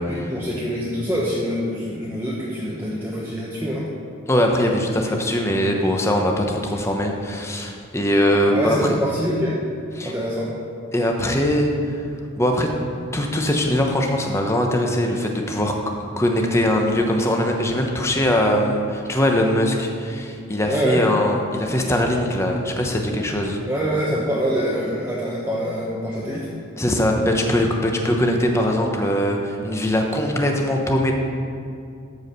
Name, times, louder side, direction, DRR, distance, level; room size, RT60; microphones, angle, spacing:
voice 1, 0.0-3.9 8.5-9.6 10.0-10.5 20.6-21.0 23.7-26.5, equal, 10° right, -6 dB, 1.0 m, -25 dB
voice 2, 4.3-8.9 10.0-10.1 10.9-12.0 12.4-12.7 13.1-15.8 16.2-23.6 26.8-31.1, left 1 dB, 15° left, 2 dB, 0.9 m, -21 dB
13.5 x 4.8 x 6.8 m, 2.4 s
head